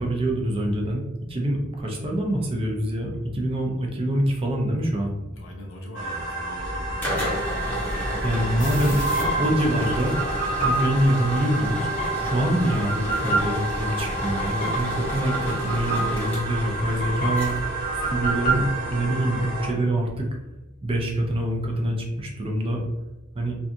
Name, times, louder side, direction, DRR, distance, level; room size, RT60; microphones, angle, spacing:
voice 1, 0.0-5.1 8.2-9.0 9.4-10.1 10.6-17.5 18.1-20.3 20.8-22.8 23.3-23.6, right 1 dB, 30° right, 0 dB, 0.4 m, -25 dB
voice 2, 4.9-7.3 9.0-9.9, equal, 80° left, -1 dB, 0.7 m, -41 dB
sound 1, 5.9-19.7, right 2 dB, 75° right, 0.7 m, -32 dB
sound 2, 6.6-19.1, equal, 10° left, 0.7 m, -32 dB
sound 3, 8.6-19.4, right 2 dB, 45° left, 0.8 m, -30 dB
2.7 x 2.3 x 2.5 m, 1.0 s
head